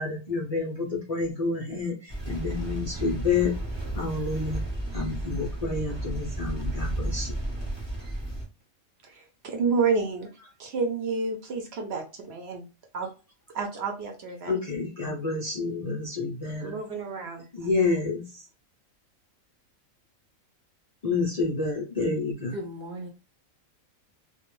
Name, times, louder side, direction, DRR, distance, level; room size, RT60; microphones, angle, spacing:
voice 1, 0.0-3.5 3.9-4.6 4.9-7.3 14.5-16.7 17.5-18.4 21.0-22.6, left 4 dB, 65° left, -2 dB, 0.3 m, -29 dB
sound 1, 2.1-8.4, right 1 dB, 30° right, 0.6 m, -33 dB
voice 2, 9.0-10.3 10.6-12.6 12.9-13.1 13.5-14.5 16.6-17.4, right 4 dB, 60° right, 4 dB, 0.8 m, -29 dB
voice 3, 22.5-23.1, equal, 80° right, 0 dB, 0.4 m, -36 dB
2.3 x 2.2 x 3.0 m, 0.31 s
omnidirectional pair, 1.4 m